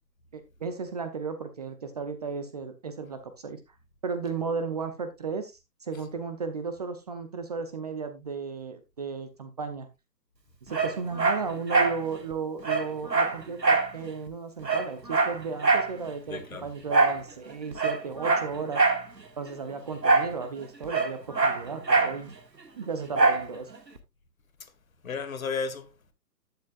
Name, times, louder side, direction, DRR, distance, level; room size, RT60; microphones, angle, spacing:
voice 1, 0.3-3.6 4.0-9.9 10.7-18.8 19.4-22.3 22.8-23.7, right 5 dB, 25° right, 0.8 m, -34 dB
Dog, 10.7-12.0 12.3-12.4 12.6-13.9 14.3-14.4 14.6-15.9 16.9-17.2 17.7-19.0 20.0-20.4 20.6-22.2 23.1-23.5 24.0-24.1, right 3 dB, 85° right, 1.9 m, -23 dB
voice 2, 16.3-16.7 25.0-26.1, left 5 dB, 55° left, 1.8 m, -34 dB
11.5 x 8.5 x 2.4 m
figure-of-eight pair, 135°, 49 cm